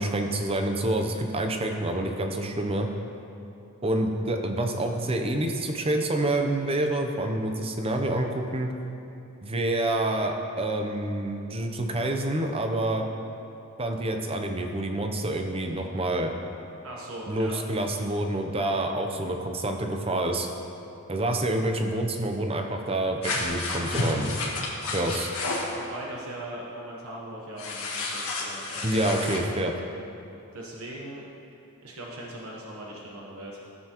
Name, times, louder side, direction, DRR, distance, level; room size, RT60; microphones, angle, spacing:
voice 1, 0.0-2.9 3.8-8.7 9.4-13.0 13.8-16.3 17.3-20.5 21.1-24.4 24.9-25.3 28.8-29.7, right 1 dB, 25° right, 4 dB, 0.6 m, -27 dB
voice 2, 16.8-17.9 25.6-29.4 30.5-31.2 31.8-33.6, right 1 dB, 70° right, -3 dB, 1.1 m, -40 dB
sound 1, 23.2-25.7 27.6-29.4, left 2 dB, 75° left, 1.6 m, -31 dB
15.0 x 6.7 x 3.0 m, 2.8 s
head